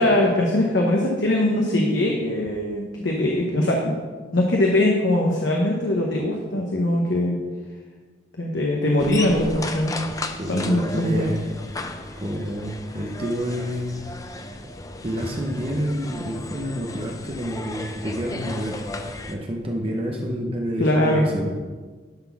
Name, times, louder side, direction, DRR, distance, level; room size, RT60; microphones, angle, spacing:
voice 1, 0.0-3.9 4.3-7.4 8.4-9.9 10.5-11.3 20.8-21.2, left 1 dB, 75° left, -1 dB, 1.1 m, -21 dB
sound 1, 9.0-19.4, left 2 dB, 20° left, 0.4 m, -35 dB
voice 2, 10.4-11.4 11.7-11.8 12.2-14.0 15.0-19.0 19.3-21.5, equal, 30° right, 1 dB, 0.8 m, -28 dB
11.0 x 4.2 x 5.8 m, 1.4 s
head